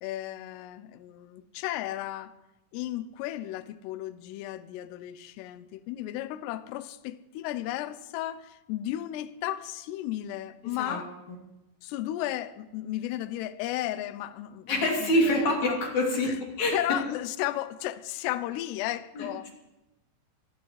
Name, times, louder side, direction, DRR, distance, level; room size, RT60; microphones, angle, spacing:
voice 1, 0.0-2.4 2.7-11.1 11.8-15.8 16.1-16.4 16.7-19.5, left 14 dB, 80° left, 2.6 m, -34 dB
voice 2, 14.7-16.7 19.1-19.5, left 1 dB, 45° left, 3.8 m, -26 dB
24.0 x 15.0 x 3.2 m
omnidirectional pair, 5.2 m